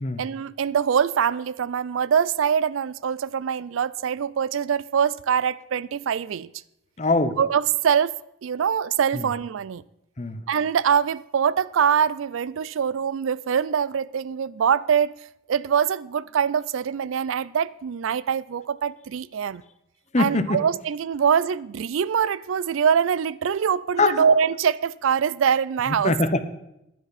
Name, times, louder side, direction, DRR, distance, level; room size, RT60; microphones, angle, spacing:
voice 1, 0.2-6.5 7.4-8.1 8.4-9.8 10.5-15.2 15.5-19.6 20.2-26.1, right 7 dB, 80° right, 0.4 m, -23 dB
voice 2, 7.0-7.4 10.2-10.4 20.1-20.6 24.0-24.1 26.0-26.4, left 3 dB, 35° left, 0.9 m, -22 dB
15.0 x 11.0 x 4.1 m
head